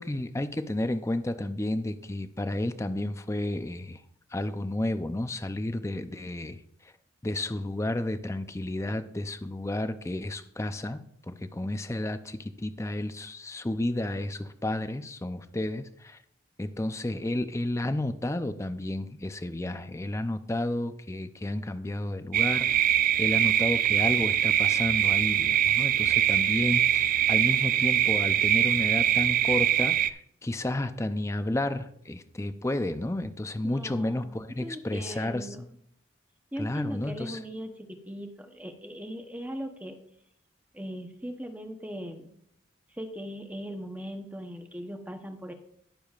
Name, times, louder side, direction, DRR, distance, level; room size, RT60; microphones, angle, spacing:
voice 1, 0.0-4.0 4.3-6.6 7.2-16.2 16.6-35.7 36.6-37.4, left 1 dB, 15° left, 10 dB, 0.5 m, -32 dB
sound 1, 22.3-30.1, right 11 dB, 45° right, 0.3 m, -23 dB
voice 2, 33.6-35.8 36.5-40.0 40.7-42.4 42.9-45.5, equal, 10° right, 5 dB, 0.9 m, -39 dB
19.5 x 6.9 x 2.4 m, 0.70 s
head